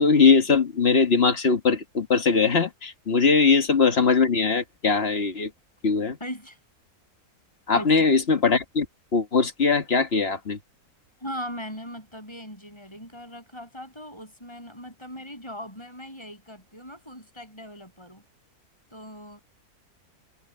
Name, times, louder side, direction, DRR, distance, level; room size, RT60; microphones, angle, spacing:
voice 1, 0.0-5.5 5.8-6.2 7.7-8.9 9.1-10.6, left 5 dB, 45° left, 1.7 m, -21 dB
voice 2, 6.2-6.6 7.7-8.2 11.2-18.2 18.9-19.4, equal, 15° left, 8.2 m, -39 dB
omnidirectional pair, 1.6 m